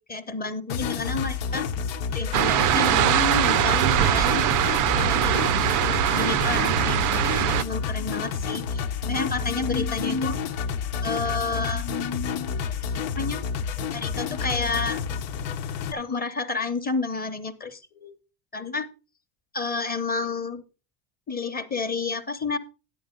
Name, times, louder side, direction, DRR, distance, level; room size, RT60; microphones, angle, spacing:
voice 1, 0.0-1.7 2.1-4.5 4.9-10.4 11.0-12.7 13.2-13.4 13.9-15.0 15.9-18.1 18.5-18.9 19.5-20.6 21.3-22.6, left 4 dB, 20° left, 8 dB, 0.9 m, -30 dB
sound 1, 0.7-15.9, left 6 dB, 80° left, 1.1 m, -30 dB
sound 2, 2.3-7.6, right 12 dB, 45° right, 0.4 m, -22 dB
10.0 x 8.4 x 3.7 m, 0.32 s
cardioid pair, 125°, 46 cm